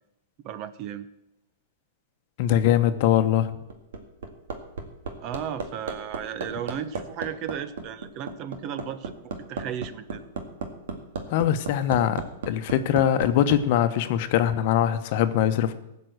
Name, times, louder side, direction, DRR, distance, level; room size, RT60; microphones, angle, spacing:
voice 1, 0.4-1.1 5.2-10.2, right 9 dB, 40° right, 13 dB, 0.8 m, -35 dB
voice 2, 2.4-3.5 11.3-12.2 12.5-15.7, left 10 dB, 55° left, 10 dB, 0.9 m, -22 dB
Hammer, 3.7-13.6 14.9-15.0, right 4 dB, 80° right, 2.0 m, -34 dB
15.5 x 5.4 x 7.9 m, 0.88 s
hypercardioid pair, 130°, 0 cm